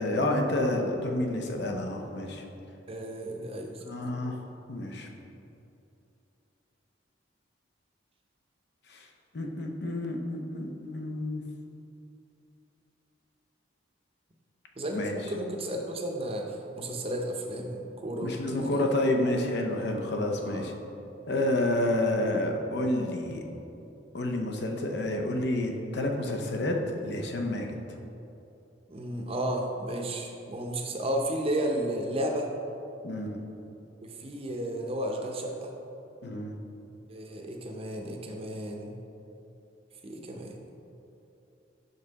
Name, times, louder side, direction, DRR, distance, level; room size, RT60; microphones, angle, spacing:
voice 1, 0.0-2.4 3.8-4.4 4.7-5.1 8.9-9.1 9.3-11.4 14.9-15.1 18.2-20.7 21.3-23.4 24.1-27.8 33.0-33.4 36.2-36.6, left 1 dB, 65° left, 3 dB, 0.7 m, -29 dB
voice 2, 2.9-3.8 14.8-18.8 20.4-20.7 28.9-32.5 34.0-35.7 37.1-39.0 40.0-40.6, right 1 dB, 30° right, 2 dB, 0.7 m, -33 dB
5.9 x 5.4 x 4.0 m, 2.8 s
head